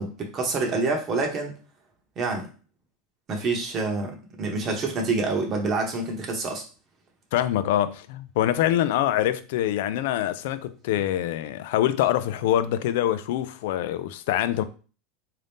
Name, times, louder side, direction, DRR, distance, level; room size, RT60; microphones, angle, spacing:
voice 1, 0.0-1.5 2.2-2.5 3.3-6.6, right 3 dB, 30° right, 0.9 m, -27 dB
voice 2, 7.3-14.6, left 12 dB, 70° left, 0.4 m, -25 dB
3.7 x 2.7 x 3.5 m
supercardioid pair, 145°, 0 cm